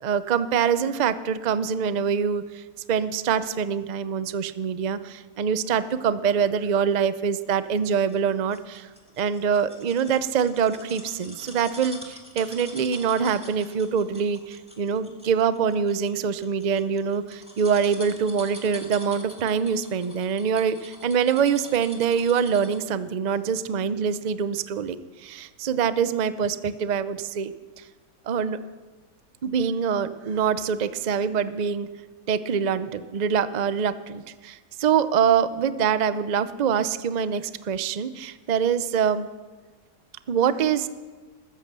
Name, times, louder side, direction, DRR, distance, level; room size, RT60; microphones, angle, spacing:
voice 1, 0.0-2.6 2.9-8.9 9.2-27.5 28.3-28.6 29.4-31.9 32.3-39.3 40.3-40.9, right 7 dB, 50° right, 13 dB, 0.5 m, -24 dB
sound 1, 7.8-22.9 23.3-23.4, equal, 5° right, 1.9 m, -45 dB
15.0 x 13.5 x 6.7 m, 1.4 s
omnidirectional pair, 1.7 m